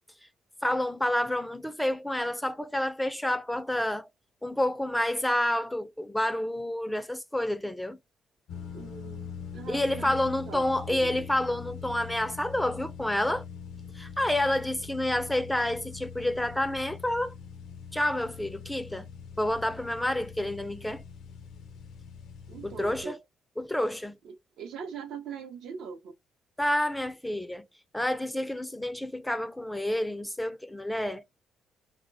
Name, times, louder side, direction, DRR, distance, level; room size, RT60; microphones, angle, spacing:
voice 1, 0.6-4.1 4.4-8.0 9.7-13.4 13.9-17.3 17.9-19.1 19.4-21.0 22.6-23.2 23.6-24.2 26.6-27.7 27.9-31.2, left 1 dB, 5° left, 0.3 m, -29 dB
sound 1, 8.5-23.0, left 6 dB, 80° left, 0.5 m, -43 dB
voice 2, 8.7-11.3 22.5-23.2 24.2-26.1, right 6 dB, 80° right, 0.6 m, -42 dB
2.2 x 2.0 x 3.8 m
cardioid pair, 90°, 0 cm